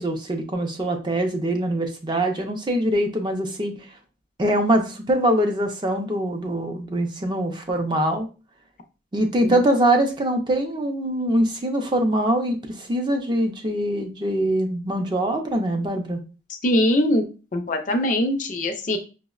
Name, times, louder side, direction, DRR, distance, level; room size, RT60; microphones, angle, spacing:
voice 1, 0.0-3.9 4.4-8.3 9.1-16.2, right 1 dB, 25° right, 4 dB, 0.4 m, -23 dB
voice 2, 16.6-17.2 17.5-19.0, left 1 dB, 40° left, 5 dB, 0.4 m, -22 dB
5.4 x 2.0 x 2.3 m, 0.33 s
head